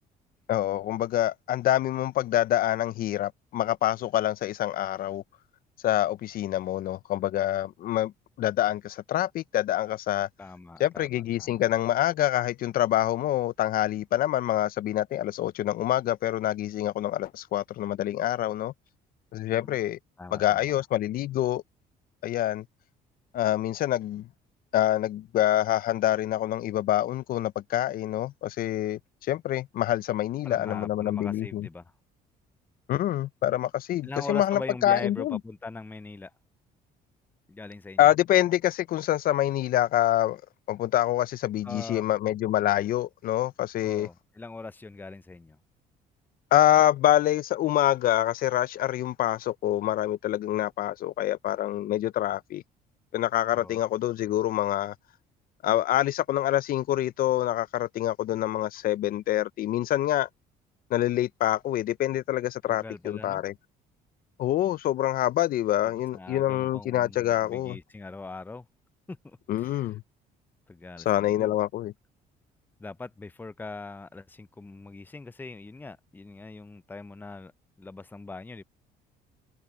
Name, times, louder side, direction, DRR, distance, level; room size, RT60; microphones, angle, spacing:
voice 1, 0.5-5.2 5.8-8.1 8.4-10.3 10.8-18.7 19.3-20.0 20.3-21.6 22.2-22.6 23.3-24.3 24.7-31.7 32.9-35.4 38.0-40.4 40.7-44.1 46.5-52.6 53.1-54.9 55.6-60.3 60.9-63.5 64.4-67.8 69.5-70.0 71.1-71.9, left 13 dB, 60° left, 0.5 m, -26 dB
voice 2, 10.4-11.6 19.5-19.8 20.2-20.7 30.4-31.9 34.0-36.3 37.5-38.1 41.6-42.0 43.8-45.6 53.5-53.8 62.7-63.4 66.1-68.7 69.1-69.9 70.7-71.6 72.8-77.5 77.8-78.6, left 3 dB, 10° left, 0.6 m, -41 dB
cardioid pair, 110°, 17 cm